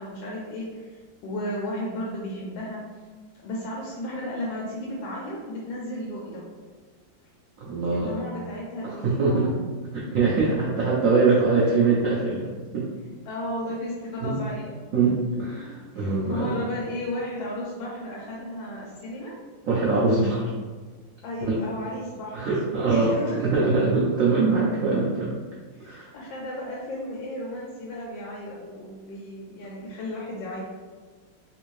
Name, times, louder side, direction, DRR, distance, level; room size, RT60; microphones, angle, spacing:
voice 1, 0.0-2.8 3.4-6.4 7.9-9.6 10.0-10.5 13.3-14.8 15.9-19.4 21.2-23.7 25.7-30.6, left 1 dB, 80° left, -3 dB, 1.3 m, -34 dB
voice 2, 7.6-8.1 8.8-9.5 9.9-12.5 12.7-12.9 14.2-14.4 14.9-16.5 19.7-20.5 21.5-21.6 22.3-25.3 25.8-26.1, right 3 dB, 85° right, -5 dB, 0.7 m, -23 dB
3.3 x 2.6 x 3.1 m, 1.4 s
omnidirectional pair, 2.1 m